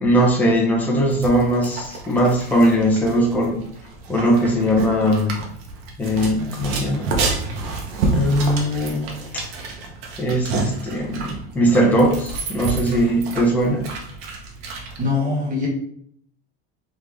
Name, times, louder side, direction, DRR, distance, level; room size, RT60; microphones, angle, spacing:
voice 1, 0.0-3.6 4.1-5.4 6.0-7.1 8.1-9.4 10.2-13.9, equal, 5° left, -3 dB, 0.8 m, -20 dB
sound 1, 1.1-15.1, right 3 dB, 80° right, 1.1 m, -29 dB
voice 2, 15.0-15.7, left 3 dB, 25° right, -3 dB, 1.2 m, -22 dB
3.8 x 3.2 x 3.4 m, 0.66 s
cardioid pair, 150°, 30 cm